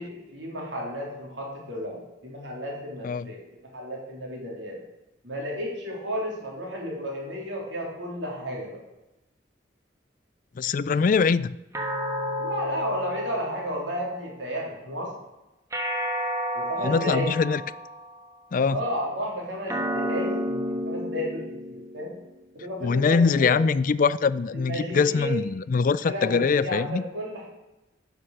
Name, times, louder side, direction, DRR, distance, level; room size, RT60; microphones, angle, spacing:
voice 1, 0.0-3.4 3.7-4.8 5.2-8.8 12.4-15.1 16.5-17.3 18.7-22.1 22.5-23.6 24.5-25.3 26.0-27.5, equal, 75° right, 3.2 m, -33 dB
voice 2, 10.6-11.6 16.8-17.6 18.5-18.8 22.8-27.0, left 5 dB, 45° left, 0.3 m, -23 dB
sound 1, 11.7-14.3 15.7-18.3 19.7-22.3, equal, 15° right, 1.2 m, -31 dB
10.0 x 5.9 x 6.5 m
head